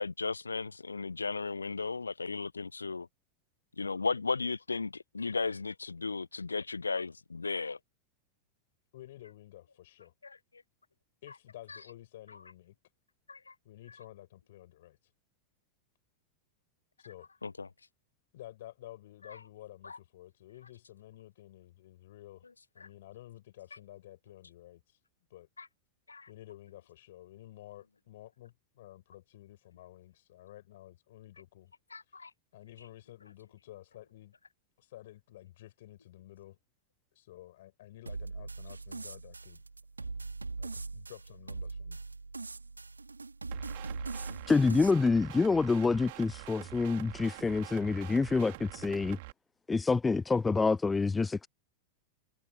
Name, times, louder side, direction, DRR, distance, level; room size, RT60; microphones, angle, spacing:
voice 1, 0.0-3.1 3.8-7.8 10.2-10.4 13.3-13.5 17.4-17.7 19.8-20.0 25.6-25.7 26.1-26.3 31.9-32.3, left 4 dB, 75° left, 1.0 m, -35 dB
voice 2, 8.9-10.1 11.2-12.7 13.6-15.1 17.0-17.3 18.3-22.5 22.7-25.0 25.3-25.5 26.3-31.7 32.0-32.3 32.5-34.3 34.8-36.6 37.1-39.6 40.6-42.0, left 14 dB, 55° left, 6.3 m, -52 dB
sound 1, 38.1-44.9, right 3 dB, 80° right, 3.0 m, -41 dB
sound 2, 43.5-49.3, right 22 dB, 50° right, 3.7 m, -46 dB
voice 3, 44.5-49.2 49.7-51.5, left 4 dB, 10° left, 0.4 m, -27 dB
figure-of-eight pair, 90°, 0 cm